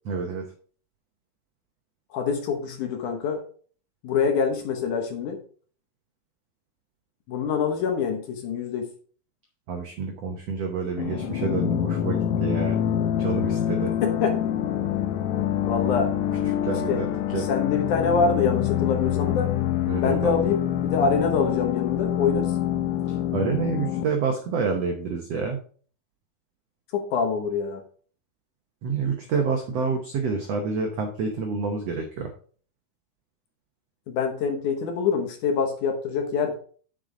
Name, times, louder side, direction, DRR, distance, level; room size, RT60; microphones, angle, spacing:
voice 1, 0.0-0.5 9.7-12.8 13.2-13.9 16.6-17.5 19.9-20.4 23.3-25.6 28.8-32.3, right 5 dB, 80° right, 4 dB, 1.4 m, -28 dB
voice 2, 2.1-3.4 4.0-5.4 7.3-8.9 14.0-14.4 15.6-16.6 16.9-17.0 17.4-19.5 20.0-22.5 26.9-27.8 34.1-36.5, left 5 dB, 65° left, 5 dB, 2.2 m, -25 dB
sound 1, 11.0-24.0, left 10 dB, 90° left, 1.6 m, -26 dB
7.5 x 6.7 x 3.8 m, 0.43 s
omnidirectional pair, 4.3 m